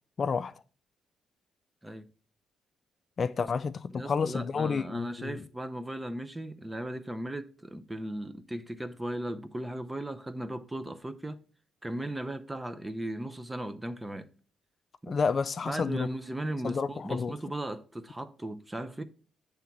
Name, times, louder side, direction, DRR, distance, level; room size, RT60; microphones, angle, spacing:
voice 1, 0.2-0.5 3.2-5.4 15.1-16.1 16.6-17.3, left 5 dB, 45° left, 0.3 m, -30 dB
voice 2, 3.9-11.4 11.8-14.3 15.0-15.1 15.6-19.0, right 1 dB, 10° right, 0.6 m, -37 dB
8.2 x 3.5 x 5.9 m
cardioid pair, 90°, 0 cm